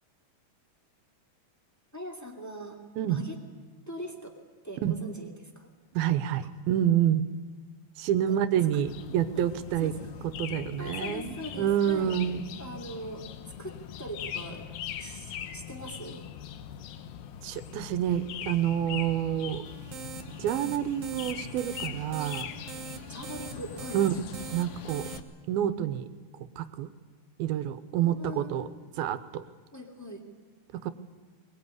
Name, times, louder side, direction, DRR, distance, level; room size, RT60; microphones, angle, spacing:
voice 1, 1.9-2.8 3.1-3.4 3.9-4.4 4.6-5.7 8.3-8.4 8.7-8.9 9.3-9.5 9.8-10.1 10.8-12.2 12.6-14.7 15.0-16.2 23.1-24.1 28.0-28.7 29.7-30.2, equal, 5° left, 1 dB, 1.9 m, -41 dB
voice 2, 5.9-7.2 8.0-9.9 10.4-12.4 15.0-15.1 17.4-19.6 20.4-22.5 23.9-24.1 24.5-25.0 25.5-26.1 26.6-26.9 27.4-28.7 29.0-29.4 30.7-30.9, right 10 dB, 85° right, 12 dB, 2.8 m, -28 dB
sound 1, 8.8-25.2, left 10 dB, 75° left, 2.8 m, -41 dB
sound 2, 19.6-25.2, right 6 dB, 65° right, 1.7 m, -43 dB
22.0 x 21.5 x 9.8 m, 1.4 s
omnidirectional pair, 4.2 m